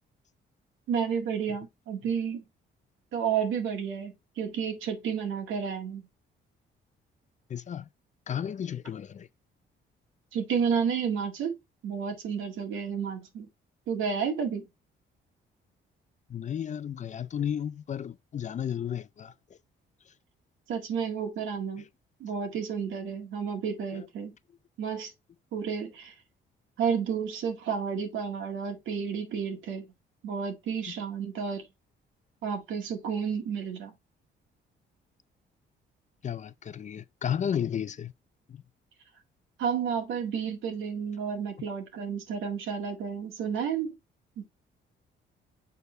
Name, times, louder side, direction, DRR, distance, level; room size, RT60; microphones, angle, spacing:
voice 1, 0.9-2.4 3.1-6.0 10.3-11.5 11.8-13.5 13.9-14.6 20.7-21.8 22.2-24.3 24.8-25.1 25.5-26.1 26.8-29.9 30.2-31.6 32.4-33.9 39.6-43.9, right 7 dB, 80° right, 1.9 m, -31 dB
voice 2, 7.5-7.9 8.3-9.3 16.3-19.3 23.9-24.1 30.9-31.0 36.2-38.1 38.5-38.6, left 9 dB, 40° left, 0.4 m, -33 dB
6.8 x 4.6 x 3.3 m
cardioid pair, 90°, 20 cm